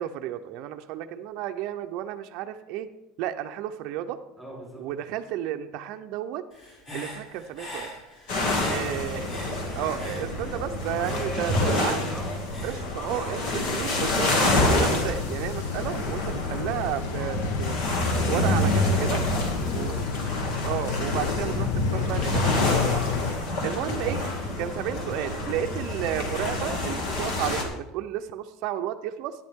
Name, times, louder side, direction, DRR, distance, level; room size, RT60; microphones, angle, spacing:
voice 1, 0.0-2.9 3.2-4.2 4.8-6.4 6.9-7.9 8.7-9.2 9.8-12.0 12.6-17.8 18.3-19.2 19.7-20.0 20.6-23.2 23.6-24.2 24.6-29.3, right 11 dB, 55° right, 6 dB, 0.6 m, -32 dB
voice 2, 4.4-4.9 8.5-9.0 11.1-12.3 18.9-20.0, right 1 dB, 5° left, -4 dB, 4.0 m, -38 dB
Human voice / Breathing, 6.5-10.7 11.0-14.6, left 1 dB, 35° left, 5.0 m, -43 dB
sound 1, 8.3-27.6, left 1 dB, 60° left, 2.2 m, -27 dB
sound 2, 14.0-23.4, left 9 dB, 80° left, 0.6 m, -32 dB
13.5 x 9.9 x 3.6 m, 0.93 s
supercardioid pair, 145°, 0 cm